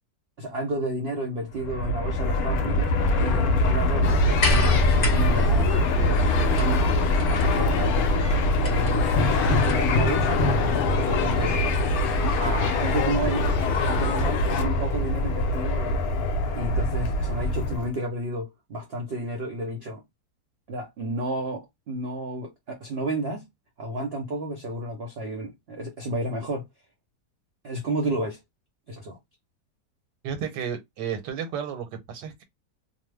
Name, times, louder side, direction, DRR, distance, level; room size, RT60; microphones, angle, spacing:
voice 1, 0.4-6.9 7.3-8.1 8.6-11.6 12.3-13.5 13.9-16.0 16.5-20.0 20.7-23.5 23.8-26.6 27.6-28.4 28.9-29.2, right 1 dB, 50° right, 0.7 m, -31 dB
Fixed-wing aircraft airplane, 1.5-17.9, left 1 dB, 65° left, 1.0 m, -24 dB
sound 1, 4.0-14.6, left 5 dB, 85° left, 0.6 m, -29 dB
sound 2, 4.4-10.0 11.1-11.2, left 2 dB, 40° left, 0.6 m, -29 dB
voice 2, 30.2-32.4, right 7 dB, 80° right, 1.4 m, -32 dB
2.9 x 2.0 x 3.2 m
omnidirectional pair, 1.8 m